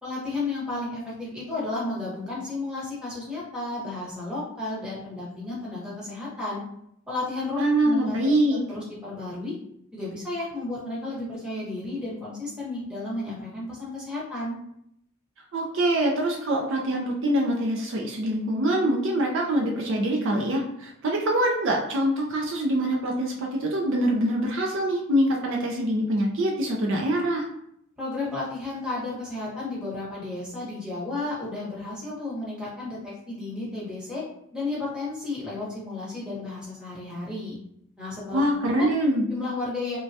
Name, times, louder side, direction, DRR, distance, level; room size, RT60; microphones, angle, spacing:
voice 1, 0.0-6.6 7.1-9.6 9.9-14.6 28.0-34.2 34.5-37.6 38.0-38.4 38.8-38.9 39.3-40.0, left 2 dB, 5° right, -8 dB, 1.0 m, -33 dB
voice 2, 7.6-8.6 15.5-27.4 38.3-39.3, right 1 dB, 55° right, 0 dB, 0.4 m, -24 dB
3.2 x 2.2 x 2.6 m, 0.74 s
head